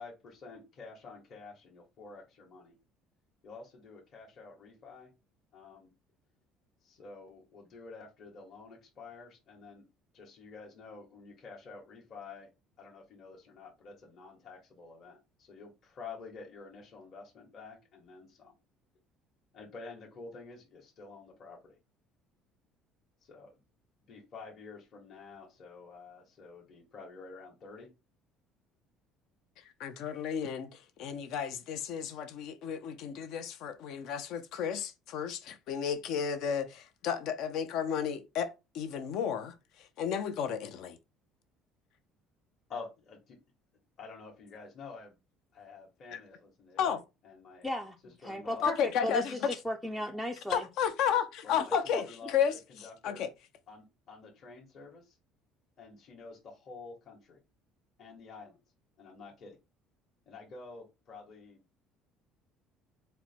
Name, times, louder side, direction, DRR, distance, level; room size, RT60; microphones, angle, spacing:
voice 1, 0.0-2.7 3.4-5.1 5.5-5.9 6.8-9.8 10.1-12.5 12.8-18.6 19.5-21.6 23.3-23.5 24.1-27.9 42.7-43.4 44.0-45.2 45.5-47.7 48.0-48.7 51.4-51.7 52.0-53.2 53.7-55.2 55.8-57.4 58.0-58.6 59.0-59.6 60.3-61.6, left 4 dB, 40° left, 1.2 m, -49 dB
voice 2, 29.8-39.5 40.0-41.0 46.1-46.2 46.8-47.0 48.6-49.5 50.5-52.5 53.0-53.3, left 8 dB, 60° left, 0.6 m, -32 dB
voice 3, 47.6-48.0 48.2-48.8 49.0-50.7 51.7-51.8, equal, 5° left, 0.4 m, -35 dB
4.3 x 2.2 x 4.3 m
cardioid pair, 150°, 0 cm